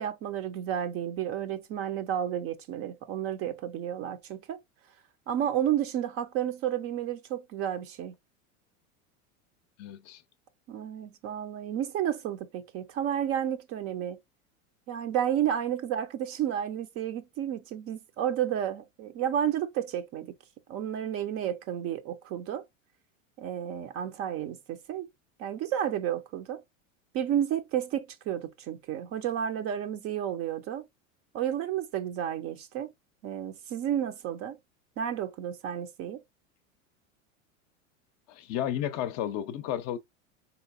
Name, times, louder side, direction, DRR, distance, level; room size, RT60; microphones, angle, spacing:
voice 1, 0.0-4.6 5.3-8.1 10.7-14.2 14.9-20.3 20.7-22.6 23.4-25.1 25.4-26.6 27.1-30.9 31.3-32.9 33.2-34.6 35.0-36.2, right 10 dB, 35° right, 0.5 m, -31 dB
voice 2, 9.8-10.2 38.3-40.0, left 11 dB, 40° left, 0.5 m, -32 dB
3.8 x 2.9 x 2.4 m
hypercardioid pair, 100°, 40 cm